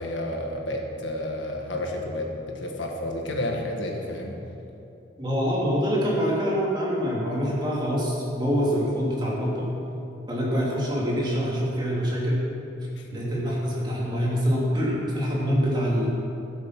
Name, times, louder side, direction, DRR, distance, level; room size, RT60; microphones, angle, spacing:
voice 1, 0.0-4.4 13.0-13.2, left 1 dB, 85° left, 1 dB, 1.7 m, -31 dB
voice 2, 5.2-9.7 10.3-12.5 13.1-16.1, equal, 25° right, -5 dB, 2.7 m, -25 dB
15.0 x 7.9 x 6.0 m, 2.7 s
head